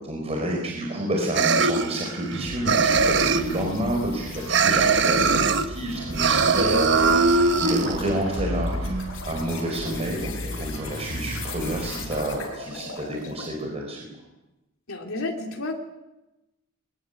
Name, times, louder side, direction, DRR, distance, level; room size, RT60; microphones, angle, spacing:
voice 1, 0.0-14.1, right 1 dB, 30° right, 0 dB, 4.7 m, -29 dB
sound 1, 1.4-2.4 2.7-3.6 4.5-5.7 6.1-8.0, right 4 dB, 55° right, 1.1 m, -20 dB
sound 2, 2.3-12.2, equal, 80° right, 7.0 m, -35 dB
sound 3, 2.7-13.6, left 5 dB, 70° left, 5.5 m, -41 dB
voice 2, 14.9-15.7, left 2 dB, 90° left, 1 dB, 3.0 m, -31 dB
24.0 x 20.5 x 8.5 m, 1.0 s
head